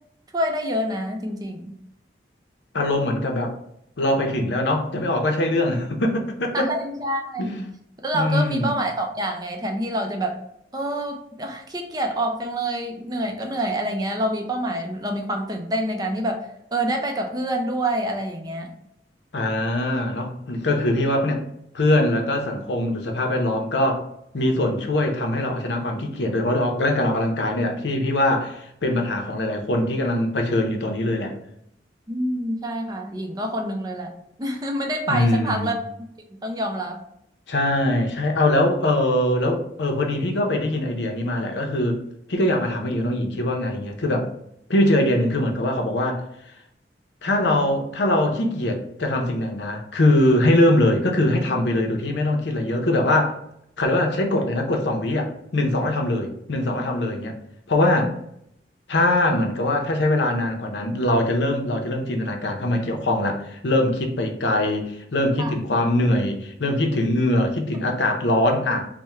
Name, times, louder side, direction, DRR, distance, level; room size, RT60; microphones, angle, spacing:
voice 1, 0.3-1.8 6.5-7.6 8.0-10.4 10.7-18.7 32.1-34.1 34.4-35.8 36.4-37.0 65.4-65.6 67.7-67.8, right 1 dB, 20° right, 3 dB, 0.5 m, -27 dB
voice 2, 2.7-3.5 4.0-6.7 7.4-7.6 8.1-8.7 19.3-21.4 21.7-24.1 24.3-31.3 35.1-35.7 37.5-42.0 42.3-44.3 44.7-46.2 47.2-53.4 53.8-57.3 57.7-58.1 58.9-68.8, left 1 dB, 75° left, 3 dB, 0.7 m, -22 dB
3.4 x 2.1 x 4.3 m, 0.75 s
head